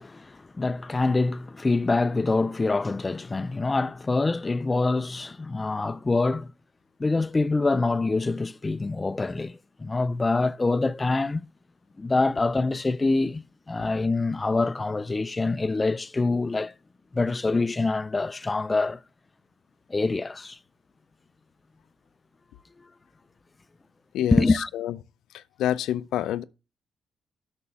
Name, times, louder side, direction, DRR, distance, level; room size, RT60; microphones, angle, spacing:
voice 1, 0.0-6.5 7.0-11.5 12.0-16.7 17.1-19.0 19.9-20.6 24.3-24.7, left 3 dB, 20° left, 0.4 m, -25 dB
voice 2, 24.1-25.0 25.3-26.4, left 12 dB, 80° left, 0.4 m, -28 dB
8.5 x 5.9 x 3.4 m
cardioid pair, 90°, 0 cm